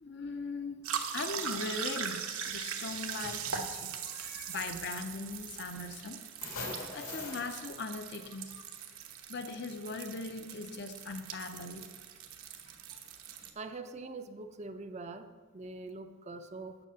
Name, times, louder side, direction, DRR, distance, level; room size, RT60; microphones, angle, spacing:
voice 1, 0.0-0.8 1.1-6.2 6.9-8.6 9.3-11.9, left 3 dB, 50° left, 8 dB, 0.6 m, -40 dB
sound 1, 0.8-13.5, right 7 dB, 80° right, 1.1 m, -40 dB
sound 2, 2.8-3.0 3.3-3.8 4.9-5.0 5.3-6.0 6.4-7.6, left 3 dB, 80° left, 2.3 m, -42 dB
voice 2, 13.6-15.3 15.5-16.8, right 3 dB, 30° right, 8 dB, 0.5 m, -43 dB
9.8 x 7.5 x 5.6 m, 1.5 s
head